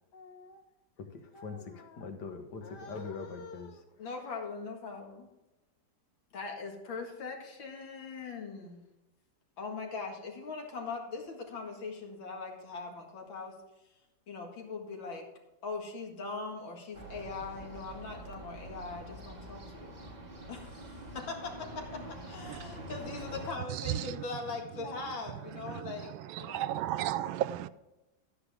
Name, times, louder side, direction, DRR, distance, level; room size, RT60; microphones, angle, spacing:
voice 1, 0.1-0.6 1.0-3.8, left 4 dB, 60° left, 1.8 m, -43 dB
voice 2, 4.0-5.3 6.3-8.8 9.6-13.5 14.3-15.3 15.6-20.0 20.5-26.8, left 4 dB, 85° left, 2.7 m, -41 dB
sound 1, 16.9-23.5, right 1 dB, 25° right, 1.1 m, -46 dB
voice 3, 26.4-27.7, right 12 dB, 85° right, 1.3 m, -32 dB
11.5 x 9.6 x 3.5 m
omnidirectional pair, 2.1 m